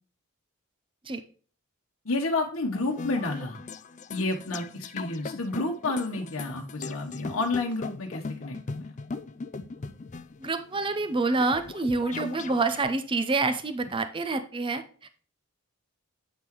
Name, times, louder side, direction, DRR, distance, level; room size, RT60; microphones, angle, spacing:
voice 1, 2.0-3.6 4.1-8.9, left 2 dB, 75° left, 0 dB, 1.0 m, -30 dB
sound 1, 2.7-12.8, left 4 dB, 35° left, 0.4 m, -39 dB
voice 2, 10.4-15.1, right 3 dB, 25° right, 9 dB, 0.6 m, -27 dB
8.4 x 5.8 x 3.0 m, 0.42 s
head